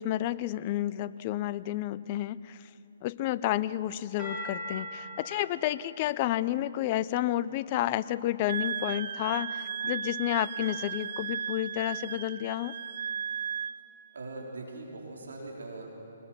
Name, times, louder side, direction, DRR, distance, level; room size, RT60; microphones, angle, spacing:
voice 1, 0.0-2.6 3.0-12.7, left 14 dB, 35° left, 15 dB, 0.5 m, -31 dB
sound 1, 4.2-7.4, equal, 15° right, 7.1 m, -42 dB
Wind instrument woodwind instrument, 8.5-13.8, right 7 dB, 60° right, 1.0 m, -35 dB
voice 2, 14.1-15.9, right 2 dB, 80° right, -1 dB, 4.1 m, -41 dB
25.5 x 20.5 x 5.9 m, 2.9 s
hypercardioid pair, 145°, 0 cm